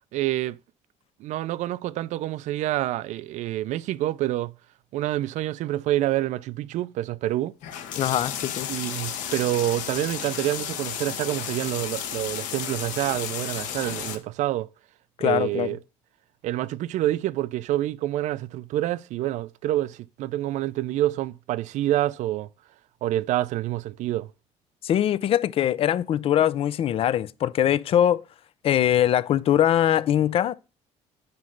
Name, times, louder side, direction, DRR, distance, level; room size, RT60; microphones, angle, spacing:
voice 1, 0.1-0.6 1.2-4.6 4.9-7.5 8.7-14.7 15.2-15.8 16.4-22.5 23.0-24.3, right 14 dB, 65° right, 0.4 m, -27 dB
sound 1, 7.6-14.1, left 9 dB, 80° left, 1.5 m, -33 dB
voice 2, 8.0-8.7 15.2-15.8 24.8-28.2 28.6-30.5, left 11 dB, 45° left, 0.4 m, -22 dB
9.4 x 3.2 x 6.4 m
cardioid pair, 135°, 13 cm